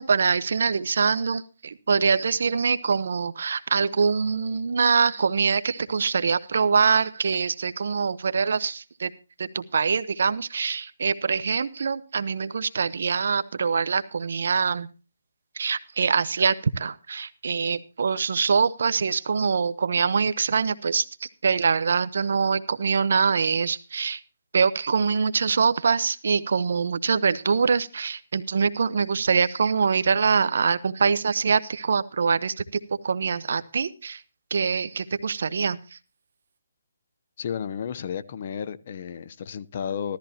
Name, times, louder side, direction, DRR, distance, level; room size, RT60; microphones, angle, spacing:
voice 1, 0.0-9.1 9.4-14.9 15.6-24.2 24.5-32.6 33.0-34.2 34.5-35.8, right 5 dB, 65° right, 16 dB, 1.0 m, -24 dB
voice 2, 37.4-40.2, left 7 dB, 45° left, 14 dB, 0.8 m, -32 dB
15.0 x 13.5 x 2.9 m, 0.33 s
hypercardioid pair, 160°, 0 cm